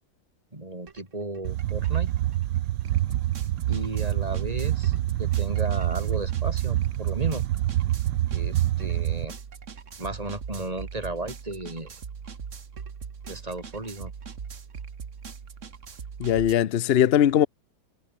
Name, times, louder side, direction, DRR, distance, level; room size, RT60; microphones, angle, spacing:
voice 1, 0.5-2.1 3.7-7.5 8.3-9.3 10.0-11.9 13.3-14.1, right 2 dB, 20° right, 4.7 m, -34 dB
sound 1, 0.9-1.0 1.3-16.5, right 6 dB, 45° right, 1.7 m, -40 dB
sound 2, 1.4-9.2, right 14 dB, 80° right, 1.4 m, -26 dB
voice 2, 16.2-17.5, left 10 dB, 60° left, 0.6 m, -20 dB
omnidirectional pair, 2.0 m